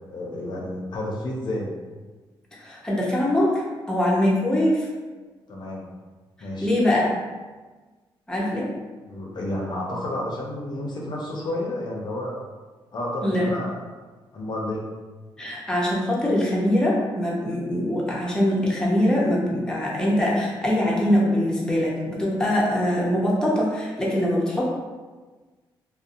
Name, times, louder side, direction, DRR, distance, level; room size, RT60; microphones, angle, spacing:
voice 1, 0.1-1.7 5.5-5.8 6.4-6.7 9.1-12.4 12.9-13.8 14.3-14.8, left 1 dB, 50° left, -3 dB, 0.5 m, -30 dB
voice 2, 2.6-4.9 6.6-7.1 8.3-8.7 13.2-13.5 15.4-24.7, left 1 dB, 10° left, -5 dB, 0.6 m, -23 dB
2.6 x 2.0 x 2.5 m, 1.3 s
cardioid pair, 80°, 9 cm